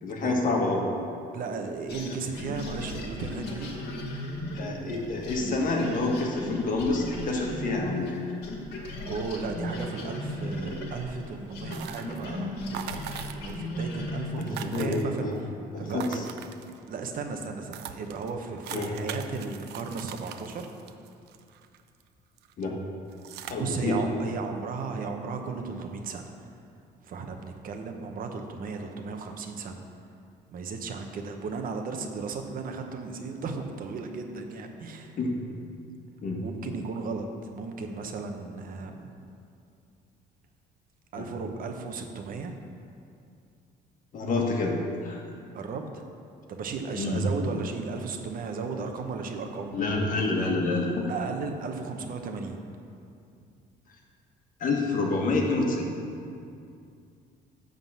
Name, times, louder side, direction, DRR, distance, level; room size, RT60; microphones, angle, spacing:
voice 1, 0.0-0.8 4.5-8.2 14.3-15.4 15.7-16.2 18.7-19.0 22.6-22.7 23.5-24.0 35.2-35.3 36.2-36.4 41.2-41.3 44.1-44.7 45.0-45.2 46.9-47.2 49.7-51.1 54.6-55.9, left 2 dB, 55° left, 0 dB, 1.6 m, -28 dB
voice 2, 1.3-3.7 9.0-15.3 15.8-16.2 16.9-20.6 23.6-26.3 27.0-29.8 30.5-35.2 36.4-39.2 41.1-42.5 44.4-44.5 45.5-46.0 46.5-49.7 51.1-52.6, right 4 dB, 55° right, 5 dB, 1.0 m, -35 dB
sound 1, 1.9-8.2 8.4-14.7, left 1 dB, 75° left, 1.7 m, -36 dB
sound 2, 11.7-12.3 12.7-13.7 13.9-14.0 14.2-15.4 15.9-17.0 17.4-17.5 17.7-22.0 22.4-22.6 23.1-23.5, right 9 dB, 75° right, 0.5 m, -41 dB
11.0 x 3.9 x 7.4 m, 2.4 s
cardioid pair, 110°, 17 cm